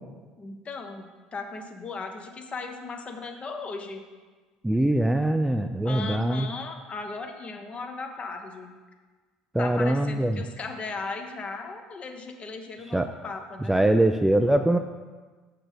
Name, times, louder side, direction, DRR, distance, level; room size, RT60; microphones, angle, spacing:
voice 1, 0.4-4.0 5.8-8.7 9.6-13.8, left 3 dB, 30° left, 5 dB, 1.1 m, -37 dB
voice 2, 4.6-6.5 9.5-10.4 12.9-13.1 13.7-14.8, right 1 dB, 5° right, 7 dB, 0.4 m, -22 dB
6.3 x 6.0 x 5.1 m, 1.4 s
figure-of-eight pair, 65°, 4 cm